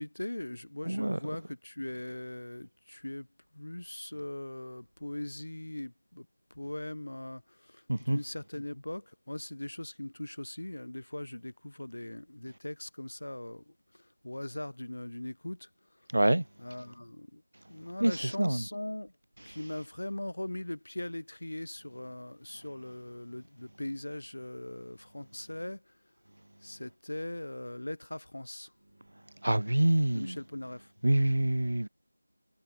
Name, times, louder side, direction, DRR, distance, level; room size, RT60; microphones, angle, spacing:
voice 1, 0.0-3.3 3.5-6.3 6.5-13.7 14.2-15.7 16.6-17.4 17.7-19.1 19.4-25.8 26.6-28.7 30.1-30.9, left 1 dB, 70° left, 1.7 m, -40 dB
voice 2, 0.9-1.2 7.9-8.2 16.1-16.4 18.0-18.6 29.4-30.4 31.0-31.9, right 1 dB, 90° right, 0.4 m, -26 dB
figure-of-eight pair, 180°, 0 cm